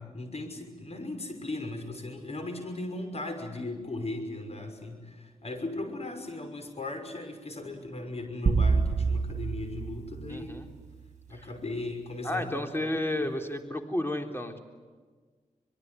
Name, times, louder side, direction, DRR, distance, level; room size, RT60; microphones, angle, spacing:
voice 1, 0.0-10.6 11.3-12.9 13.2-13.3, left 2 dB, 50° left, 7 dB, 6.0 m, -37 dB
sound 1, 8.5-11.0, right 4 dB, 55° right, 2.5 m, -27 dB
voice 2, 10.3-10.7 11.3-11.5 12.2-14.6, left 1 dB, 15° left, 5 dB, 3.6 m, -32 dB
25.0 x 22.5 x 9.5 m, 1.4 s
cardioid pair, 60°, 14 cm